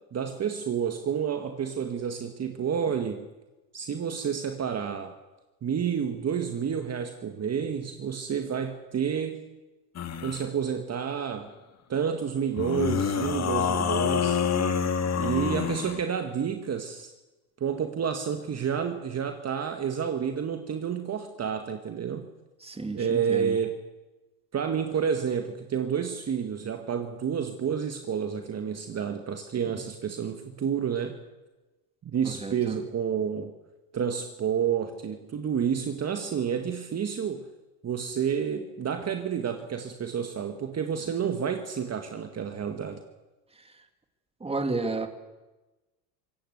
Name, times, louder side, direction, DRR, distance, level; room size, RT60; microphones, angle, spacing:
voice 1, 0.1-3.2 3.7-5.1 5.6-9.4 10.2-11.5 11.9-14.4 15.2-17.1 17.6-22.3 22.9-23.8 24.5-31.2 32.0-33.5 33.9-37.4 37.8-43.0, right 7 dB, 30° right, 6 dB, 1.9 m, -30 dB
sound 1, 9.9-10.4 12.6-16.0, left 7 dB, 30° left, 2.2 m, -27 dB
voice 2, 22.6-23.6 32.2-32.8 44.4-45.1, right 3 dB, 10° right, 7 dB, 2.7 m, -32 dB
25.5 x 17.0 x 8.1 m, 1.1 s
supercardioid pair, 100°, 49 cm